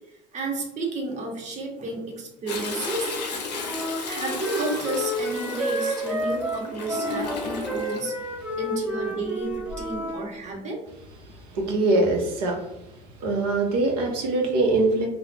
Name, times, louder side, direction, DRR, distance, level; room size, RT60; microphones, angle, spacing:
voice 1, 0.3-3.1 4.1-10.8, right 2 dB, 35° right, 0 dB, 0.8 m, -31 dB
Toilet flush, 2.5-8.0 9.5-10.0 10.4-10.5, left 4 dB, 90° left, 0.5 m, -34 dB
Wind instrument woodwind instrument, 3.6-10.2, equal, 5° right, 0.6 m, -30 dB
voice 2, 11.5-12.6 13.2-15.1, right 2 dB, 75° right, 1 dB, 0.6 m, -22 dB
2.3 x 2.0 x 3.2 m, 0.85 s
hypercardioid pair, 70°, 20 cm